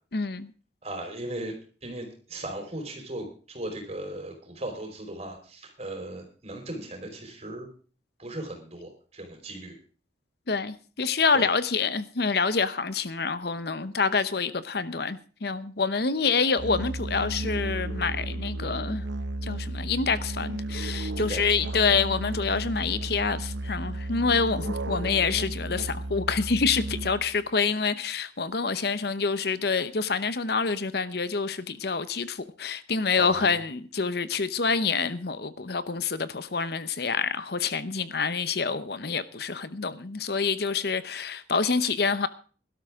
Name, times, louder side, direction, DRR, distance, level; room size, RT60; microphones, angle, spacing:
voice 1, 0.1-0.5 10.5-19.0 19.4-42.3, left 5 dB, 60° left, 0.8 m, -27 dB
voice 2, 0.8-1.6 1.8-7.7 8.2-9.7 11.3-11.5 21.2-21.5 21.7-22.0 33.1-33.6, right 1 dB, 35° right, 4.7 m, -37 dB
Musical instrument, 16.6-27.4, right 1 dB, 85° right, 0.9 m, -33 dB
18.0 x 12.5 x 3.7 m
head